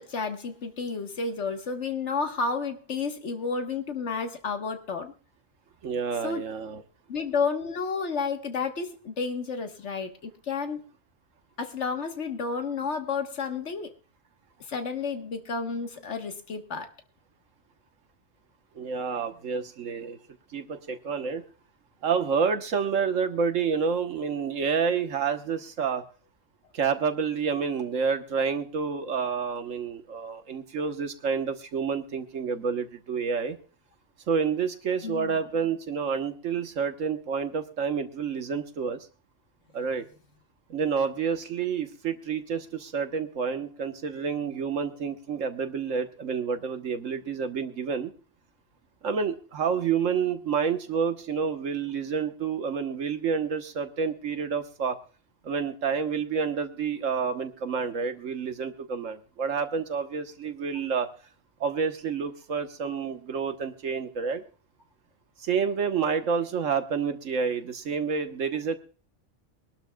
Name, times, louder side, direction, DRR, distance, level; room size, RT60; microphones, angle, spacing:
voice 1, 0.0-5.1 6.2-6.4 7.1-10.8 11.6-13.9 14.7-16.9 35.0-35.4, left 5 dB, 65° left, 6 dB, 1.7 m, -31 dB
voice 2, 5.8-6.8 18.7-20.2 20.5-21.4 22.0-26.0 26.7-33.6 34.3-39.0 39.7-40.0 40.7-48.1 49.0-55.0 55.4-61.1 61.6-64.4 65.4-68.8, right 6 dB, 90° right, 8 dB, 1.5 m, -29 dB
23.5 x 12.0 x 2.3 m, 0.38 s
omnidirectional pair, 1.3 m